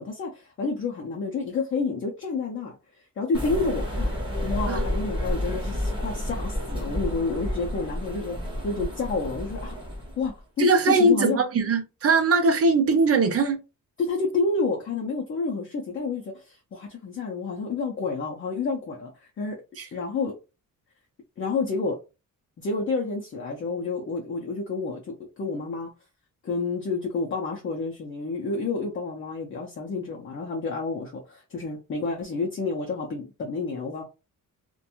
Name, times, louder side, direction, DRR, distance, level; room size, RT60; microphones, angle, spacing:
voice 1, 0.0-4.1 4.4-8.4 8.6-9.8 10.2-11.4 14.0-19.6 19.9-20.4 21.4-22.0 22.6-25.9 26.4-34.0, left 4 dB, 40° left, 0.5 m, -29 dB
sound 1, 3.3-10.3, equal, 15° right, 0.7 m, -30 dB
voice 2, 10.6-13.6 19.8-19.9, right 3 dB, 45° right, 0.5 m, -21 dB
2.5 x 2.2 x 2.8 m
wide cardioid pair, 180°, 33 cm